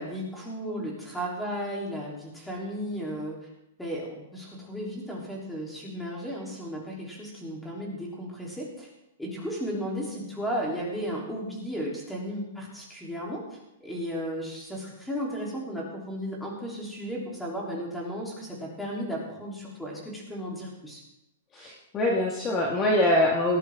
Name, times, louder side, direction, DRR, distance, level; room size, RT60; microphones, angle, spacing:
voice 1, 0.0-3.4 3.8-8.9 9.2-21.0, equal, 5° left, -3 dB, 3.5 m, -34 dB
voice 2, 21.5-23.6, left 1 dB, 20° left, -1 dB, 1.7 m, -24 dB
18.5 x 13.0 x 3.7 m, 0.88 s
hypercardioid pair, 165°, 0 cm